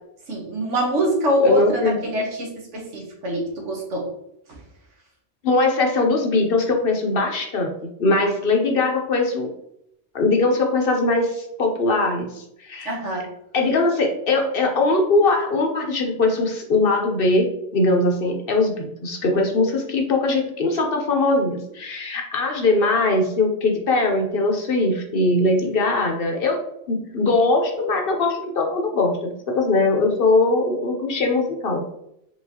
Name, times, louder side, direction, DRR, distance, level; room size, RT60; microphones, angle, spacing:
voice 1, 0.3-4.1 4.5-4.6 12.8-13.3, equal, 80° right, -1 dB, 1.4 m, -24 dB
voice 2, 1.4-2.0 5.4-7.7 8.0-9.5 10.1-13.0 13.5-26.6 26.9-31.8, left 2 dB, 55° left, 2 dB, 0.8 m, -21 dB
4.6 x 3.3 x 2.8 m, 0.76 s
omnidirectional pair, 1.2 m